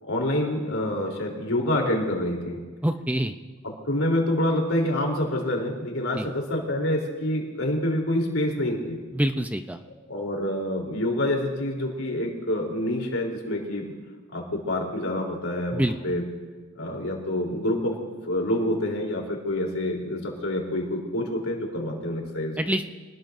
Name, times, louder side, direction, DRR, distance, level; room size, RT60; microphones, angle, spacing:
voice 1, 0.0-2.6 3.6-9.0 10.1-13.9 14.3-16.2 16.8-18.0 18.2-22.6, left 1 dB, 80° left, 0 dB, 3.7 m, -27 dB
voice 2, 2.8-3.3 6.1-6.3 9.1-9.8 15.7-16.2 22.6-23.0, right 1 dB, 5° right, 7 dB, 0.5 m, -26 dB
25.5 x 19.5 x 2.7 m, 1.4 s
head